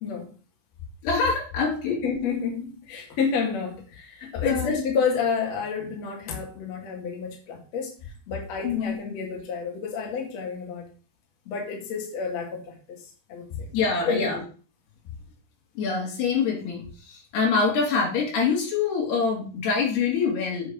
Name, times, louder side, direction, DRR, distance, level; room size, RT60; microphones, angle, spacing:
voice 1, 1.0-2.0 4.4-4.8 8.6-9.0 13.5-14.4 15.8-20.7, left 5 dB, 80° left, -1 dB, 4.8 m, -25 dB
voice 2, 1.9-7.9 8.3-10.9 11.5-12.8 13.3-13.7 14.0-14.4, left 5 dB, 45° left, 0 dB, 3.2 m, -29 dB
8.0 x 7.0 x 5.4 m, 0.38 s
omnidirectional pair, 4.6 m